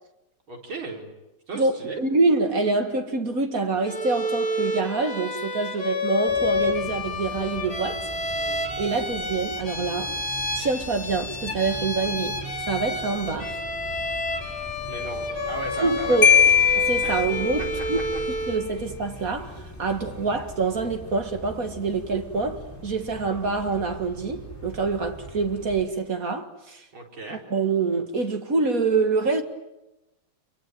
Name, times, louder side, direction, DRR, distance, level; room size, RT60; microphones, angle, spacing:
voice 1, 0.5-1.1 1.5-2.0 14.9-16.4 17.0-17.3 18.1-18.2 26.9-27.4, right 2 dB, 80° right, 5.1 m, -36 dB
voice 2, 1.5-8.0 8.8-10.1 10.5-12.4 12.7-13.6 15.8-16.3 16.7-18.0 18.3-26.8 27.3-29.4, right 3 dB, 45° right, 2.0 m, -26 dB
Bowed string instrument, 3.8-18.7, left 2 dB, 90° left, 5.0 m, -30 dB
sound 1, 6.3-25.9, right 1 dB, 5° left, 5.7 m, -41 dB
Marimba xylophone, 16.2-18.0, left 8 dB, 35° left, 1.3 m, -19 dB
27.0 x 23.0 x 9.3 m
omnidirectional pair, 2.2 m